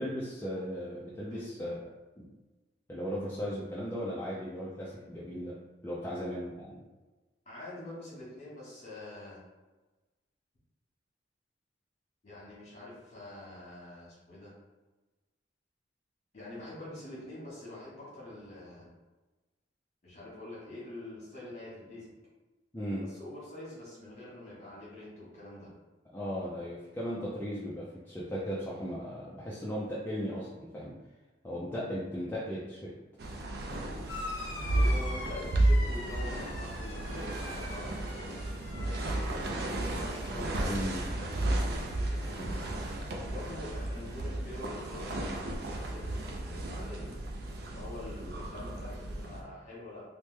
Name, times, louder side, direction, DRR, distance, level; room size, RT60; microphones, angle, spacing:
voice 1, 0.0-1.8 2.2-2.3 2.9-5.6 5.8-6.8 22.7-23.1 26.1-31.0 31.4-32.9 40.7-41.0 42.4-42.6 48.2-48.3, equal, 10° left, -7 dB, 0.3 m, -37 dB
voice 2, 7.4-9.4 12.2-14.5 16.3-18.9 20.0-22.1 23.0-25.7 34.6-38.4 39.3-41.3 41.7-42.6 43.2-47.1 47.6-50.0, left 1 dB, 40° left, -7 dB, 1.3 m, -45 dB
sound 1, 33.2-49.4, right 1 dB, 55° right, 0.4 m, -33 dB
sound 2, 34.1-43.1 43.4-44.1 45.2-45.3, left 3 dB, 85° left, 0.6 m, -45 dB
3.1 x 2.1 x 3.2 m, 1.2 s
head